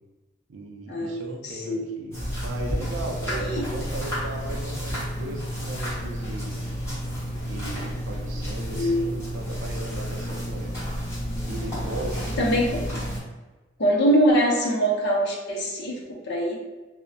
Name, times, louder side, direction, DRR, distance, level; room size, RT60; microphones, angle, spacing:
voice 1, 0.5-6.5 7.5-10.9 11.5-12.4, right 1 dB, 85° right, 1 dB, 0.4 m, -37 dB
voice 2, 1.4-1.8 3.3-3.6 8.7-9.1 12.4-12.8 13.8-16.6, equal, 60° left, -1 dB, 0.6 m, -23 dB
sound 1, 2.1-13.2, equal, 15° left, 1.0 m, -31 dB
2.6 x 2.0 x 2.6 m, 1.2 s
head